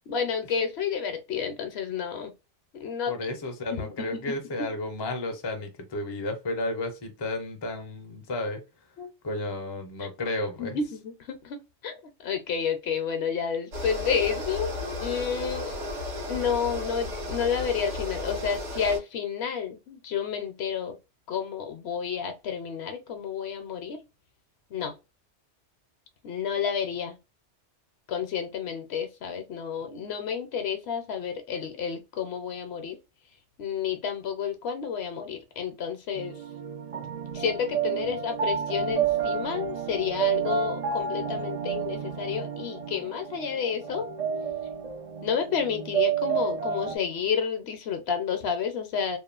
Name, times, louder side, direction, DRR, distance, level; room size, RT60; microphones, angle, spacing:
voice 1, 0.1-2.3 2.7-3.3 3.7-4.4 9.0-9.1 10.0-10.1 10.6-14.7 15.0-15.7 16.3-21.0 21.3-24.0 24.7-25.0 26.2-27.2 28.1-33.0 33.6-36.4 37.3-44.1 45.2-49.2, left 7 dB, 65° left, 0.8 m, -30 dB
voice 2, 3.1-8.6 9.2-10.8, left 2 dB, 35° left, 0.4 m, -32 dB
sound 1, 13.7-19.0, left 2 dB, 75° right, 1.2 m, -34 dB
sound 2, 36.2-47.0, right 7 dB, 55° right, 0.4 m, -30 dB
2.9 x 2.1 x 2.3 m
omnidirectional pair, 1.2 m